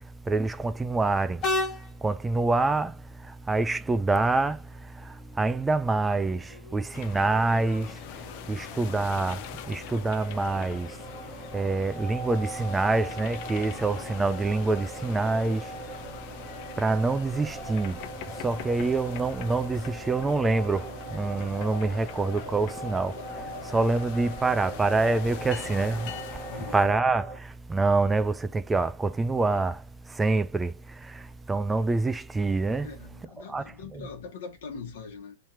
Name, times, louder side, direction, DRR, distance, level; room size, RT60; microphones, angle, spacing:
voice 1, 0.3-1.4 2.0-2.9 3.5-4.6 5.4-6.4 6.7-7.9 8.5-9.4 9.7-10.9 11.5-15.6 16.8-17.9 18.4-20.8 21.1-23.1 23.7-26.1 26.7-27.3 27.7-29.8 30.2-30.7 31.5-32.9 33.5-33.6 33.9-34.0, right 3 dB, 10° right, 0.4 m, -25 dB
Train, 1.4-18.7, left 3 dB, 30° left, 1.3 m, -41 dB
sound 1, 6.9-26.9, left 11 dB, 50° left, 0.6 m, -43 dB
sound 2, 7.9-27.4, right 2 dB, 40° right, 1.2 m, -41 dB
voice 2, 26.5-26.8 32.8-35.4, left 5 dB, 65° left, 1.2 m, -41 dB
3.2 x 2.8 x 4.5 m
hypercardioid pair, 115°, 0 cm